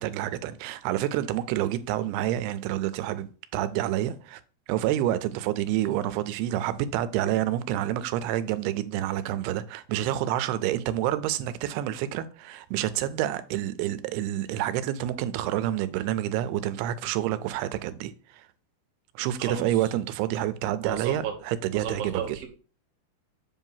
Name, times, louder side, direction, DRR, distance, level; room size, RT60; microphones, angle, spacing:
voice 1, 0.0-4.4 4.7-18.4 19.2-22.4, right 12 dB, 90° right, 2.6 m, -28 dB
voice 2, 19.4-19.7 20.8-21.3 21.7-22.5, right 8 dB, 70° right, 1.4 m, -33 dB
7.6 x 2.7 x 5.5 m
omnidirectional pair, 4.5 m